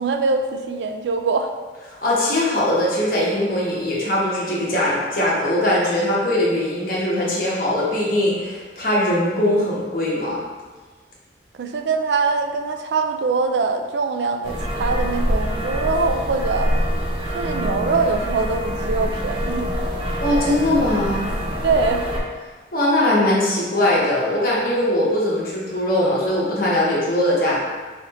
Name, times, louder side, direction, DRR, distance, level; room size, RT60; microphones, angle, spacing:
voice 1, 0.0-1.5 11.6-16.7 17.3-19.7 21.6-22.0, right 4 dB, 80° right, 6 dB, 0.4 m, -23 dB
voice 2, 1.9-10.4 20.2-21.3 22.7-27.6, left 1 dB, 55° left, -6 dB, 1.2 m, -21 dB
sound 1, 14.4-22.2, equal, 30° right, 0.6 m, -25 dB
4.2 x 4.0 x 3.0 m, 1.4 s
head